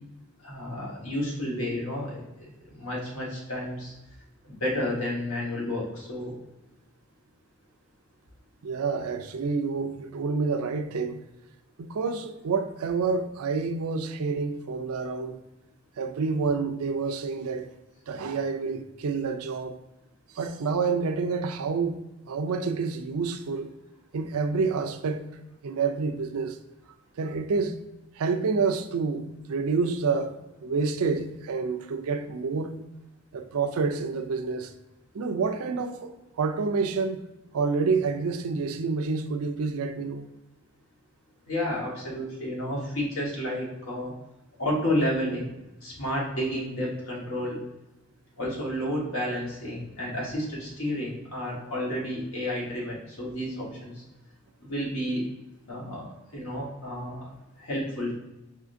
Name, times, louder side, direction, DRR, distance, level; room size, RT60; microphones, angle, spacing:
voice 1, 0.4-3.9 4.4-6.3 41.5-44.1 44.6-45.5 45.8-47.6 48.4-53.9 54.6-55.2 55.7-56.1 56.3-57.3 57.6-58.1, left 1 dB, 65° left, 1.4 m, -31 dB
voice 2, 8.6-11.2 11.8-15.4 16.0-17.7 18.1-19.8 20.3-22.0 22.3-23.7 24.1-25.3 25.6-26.6 27.2-27.8 28.2-32.8 33.3-34.7 35.1-37.2 37.5-40.3, right 4 dB, 75° right, 0.4 m, -28 dB
5.0 x 3.6 x 2.6 m
head